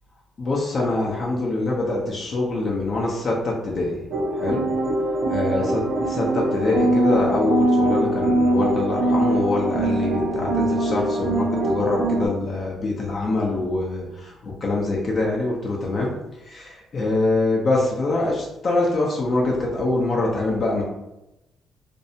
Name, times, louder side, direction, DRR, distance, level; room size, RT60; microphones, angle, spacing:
voice 1, 0.4-4.0 4.3-4.7 5.1-16.1 16.4-20.8, left 2 dB, 45° left, -3 dB, 0.6 m, -24 dB
sound 1, 4.1-12.3, right 1 dB, 70° right, 0.6 m, -22 dB
2.6 x 2.1 x 2.7 m, 0.92 s
cardioid pair, 90°, 0 cm